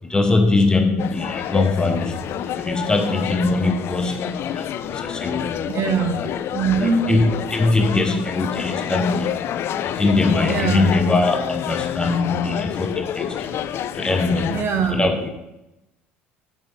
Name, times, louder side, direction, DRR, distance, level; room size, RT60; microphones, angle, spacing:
voice 1, 0.0-5.7 6.2-6.3 6.8-9.4 9.8-14.6 14.9-15.3, left 2 dB, 15° left, 5 dB, 1.0 m, -22 dB
sound 1, 1.0-14.6, left 10 dB, 40° left, 0.4 m, -28 dB
voice 2, 5.7-6.1 6.5-7.1 10.4-10.9 14.5-15.0, right 5 dB, 40° right, 5 dB, 1.4 m, -21 dB
11.5 x 6.8 x 3.4 m, 0.92 s
figure-of-eight pair, 60°, 6 cm